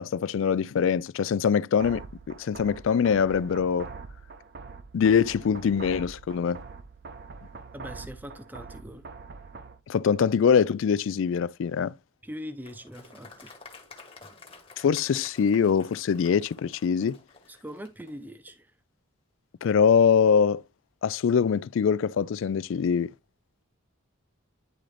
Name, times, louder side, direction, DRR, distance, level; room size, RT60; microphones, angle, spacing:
voice 1, 0.0-2.0 2.4-3.9 4.9-6.6 9.9-11.9 14.8-17.2 19.6-20.6 21.0-23.1, left 7 dB, 60° left, 0.3 m, -23 dB
sound 1, 1.8-9.8, right 4 dB, 45° right, 0.6 m, -43 dB
voice 2, 7.7-9.0 12.2-13.6 14.2-14.3 17.5-18.7, equal, 10° right, 0.6 m, -41 dB
Applause, 12.6-18.2, left 4 dB, 25° left, 1.2 m, -50 dB
10.0 x 3.8 x 3.2 m
head